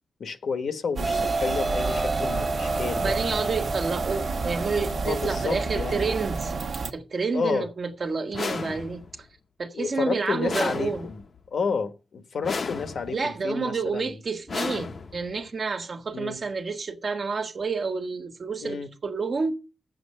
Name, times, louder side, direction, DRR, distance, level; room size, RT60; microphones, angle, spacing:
voice 1, 0.2-3.2 5.0-6.1 7.3-7.7 9.7-11.2 11.5-14.2 16.1-16.4 18.6-18.9, left 5 dB, 80° left, 1.2 m, -30 dB
sound 1, 1.0-6.6, right 2 dB, 30° right, 1.2 m, -30 dB
sound 2, 1.0-6.9, right 4 dB, 75° right, 1.1 m, -31 dB
voice 2, 3.0-6.5 6.9-9.3 9.6-11.1 13.1-19.6, right 4 dB, 50° right, 1.4 m, -29 dB
sound 3, 8.3-9.2 10.5-11.4 12.4-13.3 14.5-15.4, left 4 dB, 55° left, 0.8 m, -33 dB
9.4 x 7.9 x 6.5 m
wide cardioid pair, 135°, 0 cm